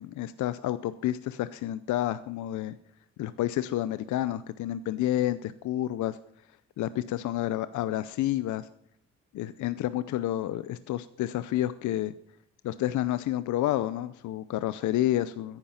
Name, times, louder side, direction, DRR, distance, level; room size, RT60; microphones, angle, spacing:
voice 1, 0.0-2.8 3.2-6.2 6.8-8.7 9.3-12.1 12.6-15.6, left 13 dB, 75° left, 14 dB, 0.6 m, -29 dB
14.5 x 10.5 x 5.7 m, 0.70 s
cardioid pair, 90°, 30 cm